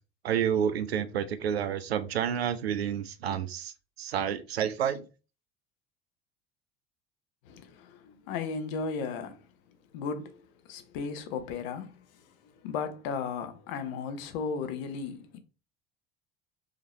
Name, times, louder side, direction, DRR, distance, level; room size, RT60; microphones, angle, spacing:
voice 1, 0.2-3.7 4.0-5.1, right 8 dB, 85° right, 0.5 m, -29 dB
voice 2, 7.5-9.4 9.9-10.4 10.7-11.9 12.4-15.4, left 5 dB, 65° left, 0.9 m, -35 dB
4.9 x 2.9 x 3.0 m
hypercardioid pair, 65°, 30 cm